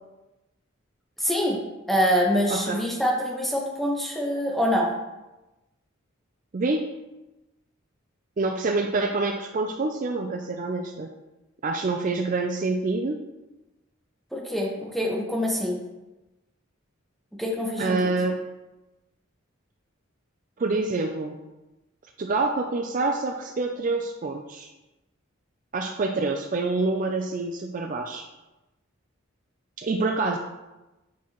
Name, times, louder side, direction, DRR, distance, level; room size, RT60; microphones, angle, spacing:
voice 1, 1.2-1.6 1.9-4.9 14.3-15.8 17.4-18.1, equal, ahead, -2 dB, 1.0 m, -25 dB
voice 2, 2.5-2.8 6.5-6.8 8.4-11.1 11.6-13.2 17.8-18.4 20.6-21.4 22.2-24.7 25.7-28.2 29.8-30.4, right 3 dB, 40° right, 3 dB, 0.4 m, -26 dB
8.1 x 4.6 x 3.0 m, 1.0 s
head